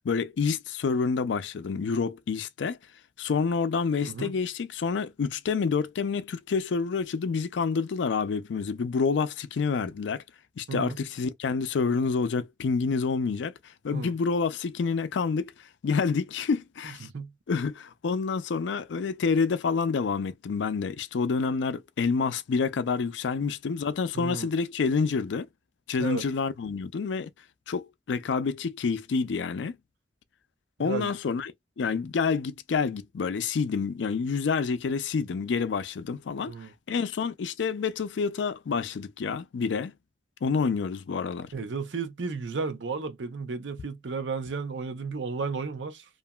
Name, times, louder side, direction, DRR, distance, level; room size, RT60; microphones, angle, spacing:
voice 1, 0.0-2.8 3.2-10.2 10.6-13.5 13.8-15.5 15.8-17.1 17.5-25.5 25.9-27.3 27.7-29.8 30.8-31.5 31.8-36.5 36.9-39.9 40.4-41.5, left 5 dB, 85° left, 0.4 m, -28 dB
voice 2, 4.0-4.3 10.7-11.0 13.9-14.1 17.0-17.3 24.1-24.5 26.0-26.3 30.8-31.1 36.4-36.7 41.5-46.1, right 4 dB, 90° right, 0.6 m, -33 dB
2.8 x 2.5 x 2.2 m
head